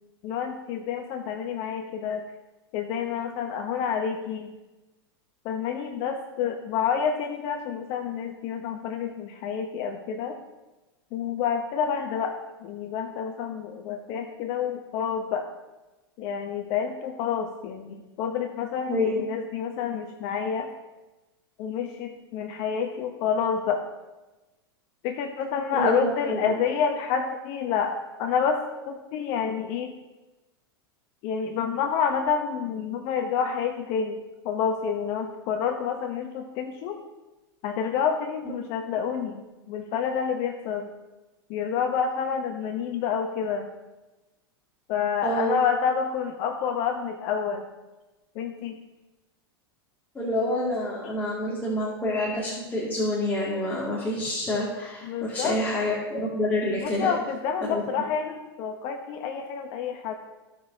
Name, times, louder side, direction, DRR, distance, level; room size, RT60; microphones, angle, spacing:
voice 1, 0.2-2.2 2.7-4.5 5.4-10.4 11.1-15.5 16.2-20.7 21.6-23.8 25.0-29.9 31.2-34.2 34.4-37.0 37.6-39.4 39.7-40.9 41.5-43.7 44.9-47.7 48.4-48.8 55.1-55.6 56.8-60.2, left 7 dB, 50° left, 5 dB, 0.9 m, -28 dB
voice 2, 18.9-19.2 25.7-26.6 45.2-45.6 50.1-57.1 57.6-57.8, left 1 dB, 15° left, -6 dB, 2.4 m, -27 dB
15.5 x 6.2 x 2.9 m, 1.1 s
hypercardioid pair, 105°, 13 cm